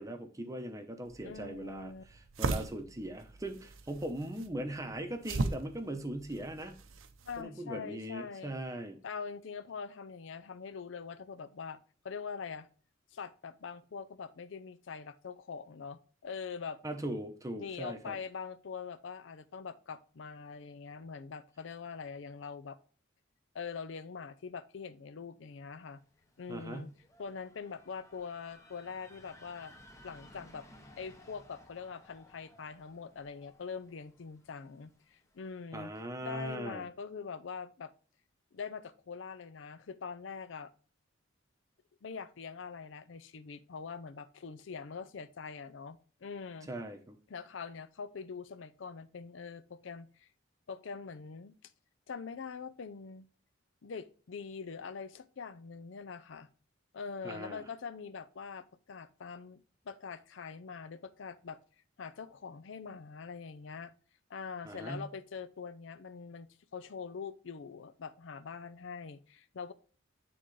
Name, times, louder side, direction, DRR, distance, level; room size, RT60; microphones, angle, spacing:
voice 1, 0.0-6.7 7.4-9.0 16.8-18.1 26.5-26.9 35.7-36.8 46.7-47.2 57.2-57.6 64.6-65.1, right 1 dB, 15° right, 0.8 m, -40 dB
sound 1, 1.1-7.4, right 3 dB, 85° right, 0.7 m, -39 dB
voice 2, 1.2-2.0 7.3-8.6 9.0-11.8 12.0-12.7 13.1-16.8 17.6-22.8 23.5-26.0 26.4-26.9 27.2-29.8 30.0-30.7 31.0-35.9 36.2-37.9 38.5-40.7 42.0-46.7 47.3-50.3 50.7-51.7 52.1-53.3 53.8-56.5 56.9-59.6 59.9-61.6 62.0-63.9 64.3-69.7, left 5 dB, 70° left, 0.5 m, -43 dB
sound 2, 25.8-35.6, left 1 dB, 15° left, 0.9 m, -59 dB
9.8 x 3.8 x 3.2 m
head